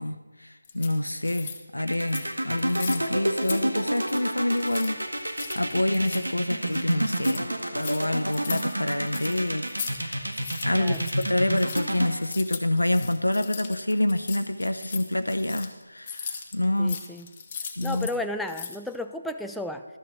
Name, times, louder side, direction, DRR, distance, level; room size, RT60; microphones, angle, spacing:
voice 1, 0.0-10.3 10.6-17.0 17.8-18.1, left 1 dB, 85° left, 8 dB, 0.7 m, -27 dB
sound 1, 0.6-1.6 1.9-2.3 2.6-3.6 3.9-4.2 4.5-10.0 10.2-18.2 18.4-18.9, left 6 dB, 25° left, 0.9 m, -38 dB
sound 2, 1.8-12.1, right 1 dB, 85° right, 1.7 m, -28 dB
voice 2, 10.7-11.1 16.8-17.3 17.8-19.9, left 2 dB, ahead, 5 dB, 0.3 m, -33 dB
12.5 x 6.7 x 7.1 m, 1.2 s
figure-of-eight pair, 160°, 0 cm